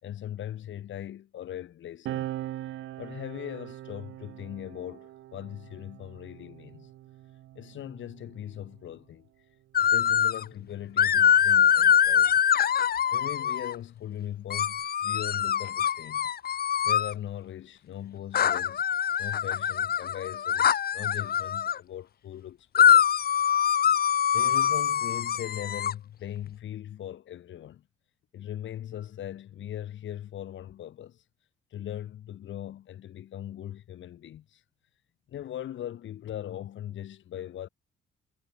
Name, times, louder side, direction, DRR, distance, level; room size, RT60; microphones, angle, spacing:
voice 1, 0.0-2.3 3.0-6.9 7.5-9.3 9.8-12.4 13.1-16.3 16.9-23.0 24.3-27.8 28.3-31.2 31.7-34.6 35.3-37.7, left 11 dB, 70° left, 5.6 m, -39 dB
sound 1, 2.1-9.0 9.9-11.8, right 14 dB, 85° right, 4.3 m, -42 dB
sound 2, 9.8-10.4 11.0-13.8 14.5-17.1 18.3-21.8 22.8-25.9, left 9 dB, 50° left, 1.0 m, -24 dB
cardioid pair, 90°, 20 cm